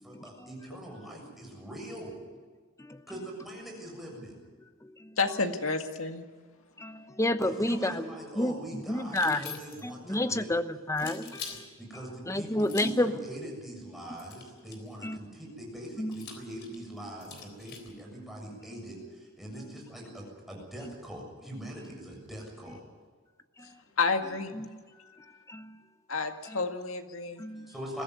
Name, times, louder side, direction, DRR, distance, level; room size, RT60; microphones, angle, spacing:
voice 1, 0.0-2.2 3.1-4.3 7.4-10.5 11.8-22.8 27.7-28.0, right 1 dB, ahead, -2 dB, 7.1 m, -42 dB
voice 2, 5.2-6.2 24.0-24.5 26.1-27.4, left 4 dB, 80° left, 6 dB, 1.9 m, -30 dB
voice 3, 6.8-8.1 8.4-11.6 12.3-13.2 15.0-15.2 16.0-16.3 23.6-23.7 24.5-24.8 25.5-25.8 26.5-26.6 27.4-27.7, left 1 dB, 15° left, 11 dB, 0.9 m, -31 dB
sound 1, 9.1-10.0 11.0-11.6 12.6-13.1 14.2-14.9 16.1-17.9, left 6 dB, 55° left, 3.7 m, -44 dB
22.0 x 15.5 x 9.4 m, 1.5 s
head